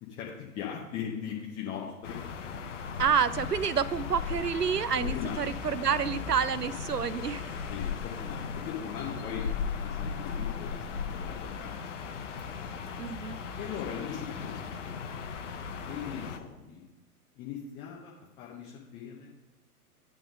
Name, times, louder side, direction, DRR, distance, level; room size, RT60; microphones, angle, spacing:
voice 1, 0.0-2.2 5.0-5.6 7.7-9.5 9.8-12.2 13.6-15.0 15.9-16.8 17.4-19.3, left 8 dB, 10° left, -3 dB, 0.6 m, -40 dB
sound 1, 2.0-16.4, left 6 dB, 50° left, 0.7 m, -37 dB
voice 2, 3.0-7.5 13.0-13.4, right 7 dB, 90° right, 14 dB, 0.5 m, -28 dB
8.7 x 3.4 x 6.2 m, 1.1 s
figure-of-eight pair, 110°, 46 cm